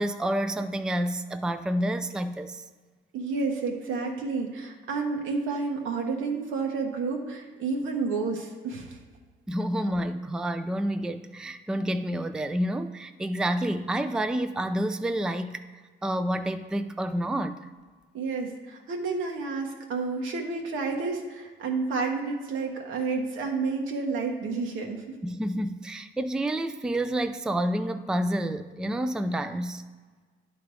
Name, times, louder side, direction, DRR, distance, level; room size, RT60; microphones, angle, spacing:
voice 1, 0.0-2.6 9.5-15.6 16.0-17.7 25.2-29.8, right 1 dB, 5° right, 10 dB, 0.4 m, -29 dB
voice 2, 3.1-9.0 18.1-25.1, right 4 dB, 80° right, 1 dB, 1.3 m, -30 dB
10.5 x 3.8 x 4.8 m, 1.4 s
cardioid pair, 90°, 20 cm